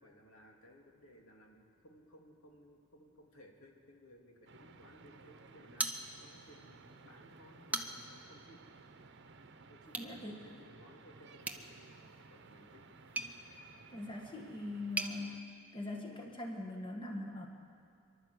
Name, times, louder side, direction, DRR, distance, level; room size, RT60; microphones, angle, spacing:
voice 1, 0.0-8.9 9.7-12.8 15.8-16.3, equal, 80° left, 0 dB, 2.7 m, -60 dB
sound 1, 4.5-15.4, right 3 dB, 55° right, 0.9 m, -57 dB
sound 2, 5.8-6.5 6.9-7.0 7.5-8.2 9.9-10.1 11.4-15.2, right 2 dB, 10° right, 1.0 m, -41 dB
voice 2, 10.0-10.4 13.9-17.5, left 2 dB, 25° left, 1 dB, 1.7 m, -42 dB
28.0 x 12.0 x 8.3 m, 2.3 s
head